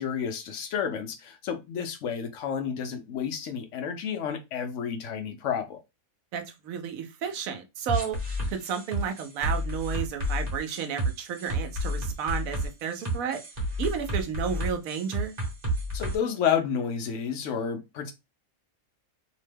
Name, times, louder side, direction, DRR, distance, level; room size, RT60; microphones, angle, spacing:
voice 1, 0.0-5.8 15.9-18.1, left 7 dB, 70° left, 0.9 m, -30 dB
voice 2, 6.3-8.2 8.5-13.4 13.8-15.4, right 7 dB, 85° right, 1.1 m, -32 dB
sound 1, 7.9-16.1, equal, 35° right, 1.0 m, -30 dB
2.9 x 2.1 x 3.3 m
omnidirectional pair, 1.4 m